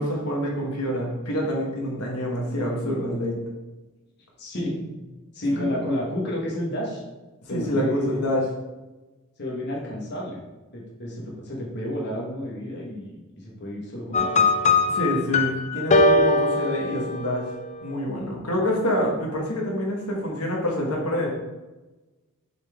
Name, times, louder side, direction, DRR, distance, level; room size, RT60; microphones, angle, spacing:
voice 1, 0.0-3.4 5.5-5.7 7.5-8.4 14.9-17.5 17.8-21.3, equal, 80° left, -2 dB, 1.5 m, -26 dB
voice 2, 4.4-4.8 5.3-7.0 7.5-8.2 9.4-10.4 10.7-14.5, left 1 dB, 50° left, -3 dB, 1.3 m, -30 dB
sound 1, 14.1-17.5, left 2 dB, 30° left, 0.4 m, -21 dB
6.8 x 4.3 x 3.5 m, 1.1 s
head